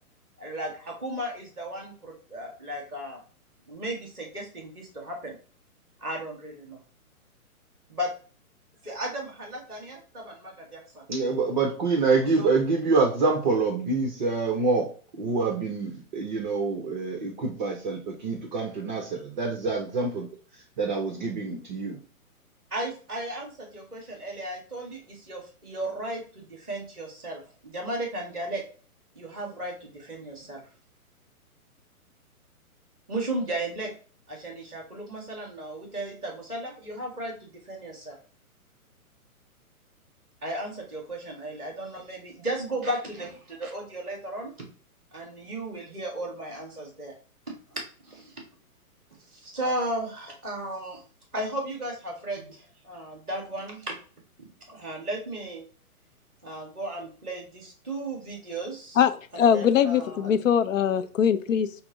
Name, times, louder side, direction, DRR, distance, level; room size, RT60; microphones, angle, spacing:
voice 1, 0.4-3.2 3.7-5.4 6.0-6.8 7.9-8.1 8.8-11.0 12.4-12.5 22.7-28.6 29.1-30.6 33.1-33.9 34.3-38.2 40.4-44.5 45.1-47.1 47.5-48.4 49.3-51.0 51.3-53.9 54.4-55.6 56.4-59.0 59.3-60.4, right 1 dB, 5° right, 0.4 m, -35 dB
voice 2, 11.1-14.9 15.2-20.3 20.8-22.0, right 4 dB, 30° right, 0.7 m, -26 dB
voice 3, 59.0-61.8, left 8 dB, 60° left, 0.5 m, -22 dB
5.7 x 2.1 x 3.9 m
hypercardioid pair, 150°, 44 cm